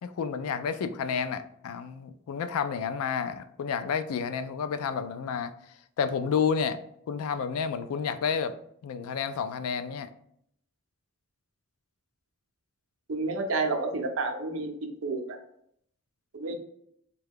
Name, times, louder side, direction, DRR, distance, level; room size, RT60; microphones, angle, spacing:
voice 1, 0.0-5.5 6.0-6.8 7.1-8.5 8.8-10.1, left 6 dB, 85° left, 0.3 m, -30 dB
voice 2, 13.1-14.7 15.0-15.4 16.3-16.6, right 3 dB, 70° right, 0.6 m, -30 dB
3.6 x 2.2 x 3.5 m
head